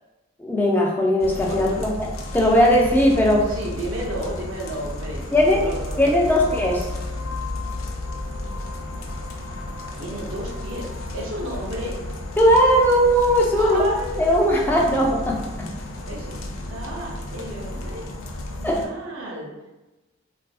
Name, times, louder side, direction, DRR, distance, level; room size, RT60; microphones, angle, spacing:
voice 1, 0.4-1.9 2.3-3.5 5.3-5.7 6.0-6.9 12.4-13.8 14.2-15.7 18.6-18.8, equal, 10° left, -2 dB, 0.3 m, -18 dB
sound 1, 1.2-18.9, left 2 dB, 85° left, 0.4 m, -33 dB
voice 2, 1.5-1.8 3.4-6.4 9.9-12.0 13.6-14.2 16.1-16.3 16.7-18.1 18.6-19.7, right 1 dB, 75° right, -2 dB, 0.6 m, -33 dB
2.6 x 2.4 x 2.3 m, 1.1 s
head